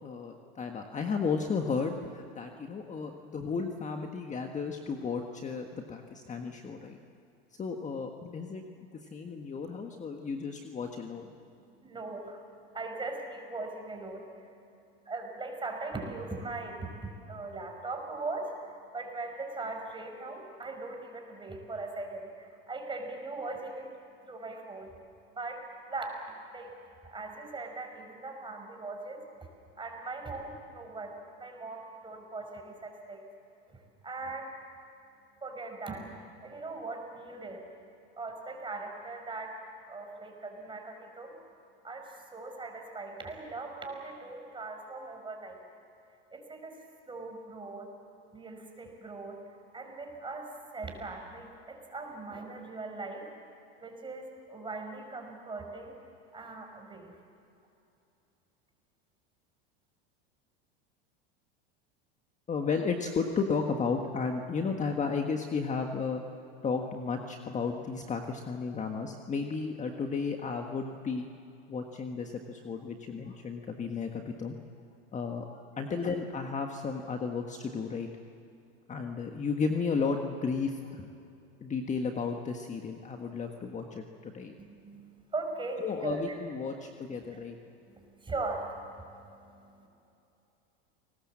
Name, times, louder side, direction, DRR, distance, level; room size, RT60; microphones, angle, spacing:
voice 1, 0.0-7.0 7.6-8.6 9.1-11.3 62.5-66.2 66.6-71.3 71.7-74.5 75.1-78.1 78.9-81.1 81.6-84.5 84.9-85.0 85.8-87.6, left 5 dB, 25° left, 4 dB, 1.5 m, -33 dB
voice 2, 11.6-23.9 24.2-25.0 25.4-26.2 26.5-26.7 27.0-29.5 29.7-33.3 33.7-34.5 35.4-37.8 38.2-41.4 41.8-45.6 46.3-47.9 48.3-49.4 49.7-53.3 53.8-56.0 56.3-57.1 84.6-86.2 87.1-87.5 87.9-89.9, right 3 dB, 15° right, 3 dB, 5.1 m, -40 dB
29.5 x 19.5 x 7.5 m, 2.7 s
supercardioid pair, 115°, 30 cm